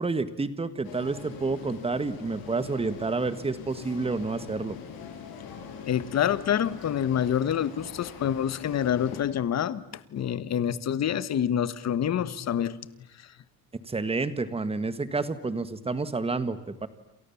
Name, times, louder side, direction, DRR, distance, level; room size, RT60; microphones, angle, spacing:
voice 1, 0.0-4.8 13.9-16.9, right 3 dB, 15° right, 13 dB, 1.6 m, -29 dB
sound 1, 0.8-9.2, left 7 dB, 65° left, 6.8 m, -43 dB
voice 2, 5.9-9.8 10.1-12.8, left 9 dB, 40° left, 16 dB, 1.4 m, -27 dB
29.0 x 28.0 x 7.2 m, 0.82 s
cardioid pair, 170°, 39 cm